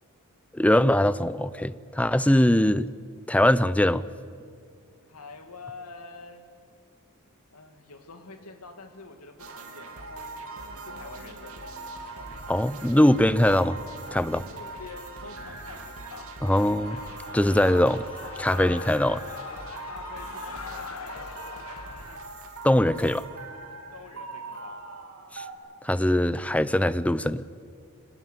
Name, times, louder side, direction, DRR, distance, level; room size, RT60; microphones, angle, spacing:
voice 1, 0.5-2.9 3.3-4.0 12.5-13.8 14.1-14.4 16.4-17.0 17.3-18.0 18.4-19.2 22.6-23.2 25.3-25.4 25.8-27.4, left 1 dB, 5° left, 16 dB, 0.5 m, -22 dB
voice 2, 5.1-6.5 7.5-11.7 14.4-16.4 19.8-21.7 23.9-24.8, left 3 dB, 85° left, 6 dB, 2.4 m, -46 dB
sound 1, 9.4-25.5, right 3 dB, 70° right, 3.1 m, -41 dB
Shout / Cheering, 16.8-22.2, left 5 dB, 70° left, 1.2 m, -41 dB
25.0 x 19.0 x 9.3 m, 2.3 s
head